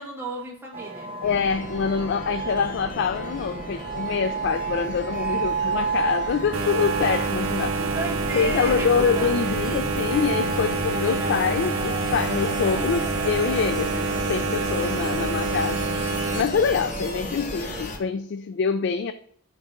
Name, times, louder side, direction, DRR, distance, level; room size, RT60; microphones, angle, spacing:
voice 1, 0.0-1.1 7.8-8.9 9.2-9.3 11.0-11.4 17.2-17.5, right 1 dB, 10° right, 1.9 m, -34 dB
sound 1, 0.7-17.8, right 5 dB, 25° right, 0.6 m, -33 dB
voice 2, 1.2-7.8 8.3-15.8 16.3-19.1, left 6 dB, 55° left, 0.3 m, -25 dB
sound 2, 1.2-18.0, left 1 dB, 35° left, 1.0 m, -35 dB
sound 3, 6.5-16.4, right 4 dB, 70° right, 0.6 m, -27 dB
10.0 x 4.0 x 3.7 m
head